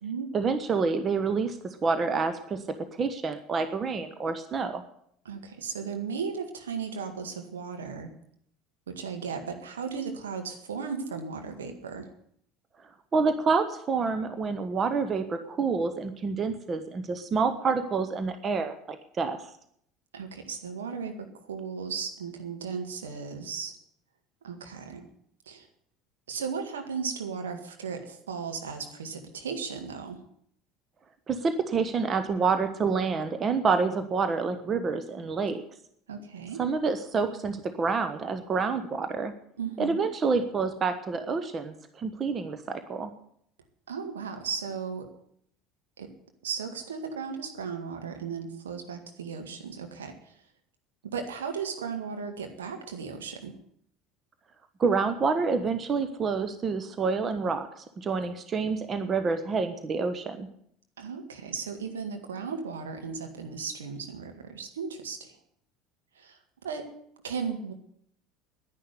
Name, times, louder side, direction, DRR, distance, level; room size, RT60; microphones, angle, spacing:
voice 1, 0.3-1.6 1.8-2.6 2.9-4.8 13.1-19.4 31.3-35.6 36.6-39.3 39.8-43.1 54.8-60.5, right 4 dB, 30° right, 9 dB, 1.3 m, -28 dB
voice 2, 5.3-8.1 8.9-12.1 20.1-23.8 24.4-25.1 25.5-25.7 26.3-30.2 36.1-36.6 39.6-40.0 43.9-45.1 46.0-46.1 46.4-50.3 51.0-53.5 61.0-65.4 66.2-66.4 66.6-66.9 67.2-67.7, right 6 dB, 70° right, 5 dB, 2.0 m, -36 dB
10.5 x 10.5 x 9.8 m, 0.68 s
figure-of-eight pair, 65°, 0 cm